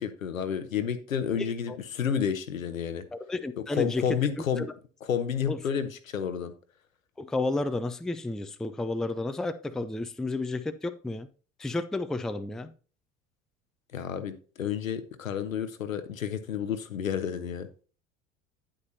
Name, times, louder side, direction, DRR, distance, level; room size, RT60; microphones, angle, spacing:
voice 1, 0.0-3.0 3.7-4.7 5.1-6.5 13.9-17.7, left 8 dB, 80° left, 0.9 m, -30 dB
voice 2, 3.1-4.0 4.6-4.7 5.5-5.6 7.2-11.3 11.6-12.7, left 2 dB, ahead, 0.4 m, -31 dB
9.3 x 8.6 x 2.7 m
figure-of-eight pair, 65°, 40 cm